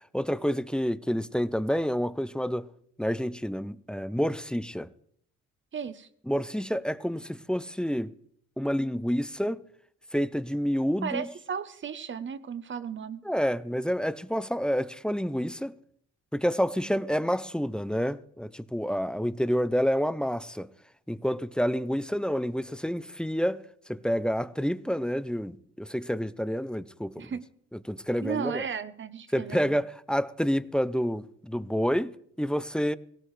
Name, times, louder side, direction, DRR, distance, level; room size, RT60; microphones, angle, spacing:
voice 1, 0.1-2.7 3.0-4.9 6.3-8.1 8.6-9.6 10.1-11.3 13.2-15.8 16.3-20.7 21.1-23.6 23.9-27.3 27.7-28.6 29.3-33.0, equal, 5° left, 0.5 m, -28 dB
voice 2, 5.7-6.1 11.0-13.2 27.2-27.5 28.2-29.8, right 7 dB, 40° right, 0.9 m, -35 dB
17.0 x 17.0 x 3.3 m
cardioid pair, 90°, 30 cm